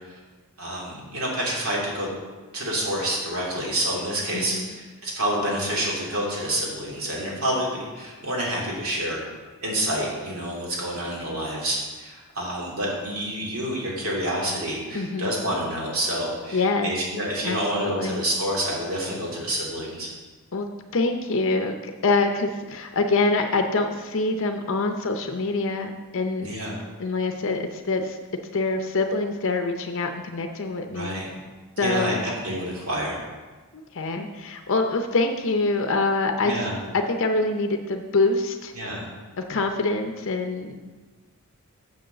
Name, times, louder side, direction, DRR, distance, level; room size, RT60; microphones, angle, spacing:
voice 1, 0.6-2.1 2.5-9.2 9.6-20.1 26.4-26.8 30.9-31.3 31.8-33.2 36.4-36.7 38.8-39.1, right 1 dB, 70° right, -3 dB, 2.6 m, -28 dB
voice 2, 4.3-4.7 14.9-15.3 16.5-16.9 17.4-18.2 20.5-20.7 20.9-26.5 27.0-28.2 28.5-31.1 31.8-32.3 33.7-36.7 36.9-38.7 39.4-40.8, left 3 dB, 60° left, 5 dB, 0.6 m, -25 dB
7.0 x 6.4 x 6.7 m, 1.3 s
head